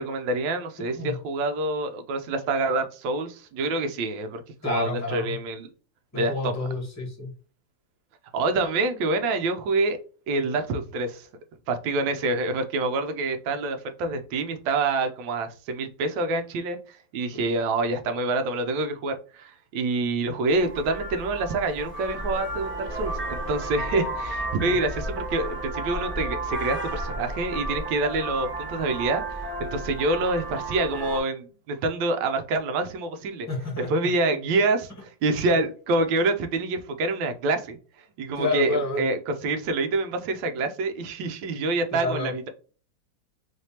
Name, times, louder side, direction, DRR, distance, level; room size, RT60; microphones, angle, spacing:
voice 1, 0.0-5.7 6.1-6.5 8.3-10.0 10.3-11.3 11.7-33.5 33.9-37.8 38.2-42.5, right 2 dB, 80° right, 1.4 m, -27 dB
voice 2, 0.8-1.2 4.6-5.4 6.1-7.4 17.3-17.4 24.6-24.8 33.5-34.1 35.5-35.6 38.4-39.0 41.9-42.3, left 2 dB, 10° left, 1.0 m, -30 dB
Vehicle horn car horn honking, 20.5-31.2, right 2 dB, 15° right, 0.4 m, -32 dB
3.5 x 3.2 x 2.8 m
omnidirectional pair, 2.0 m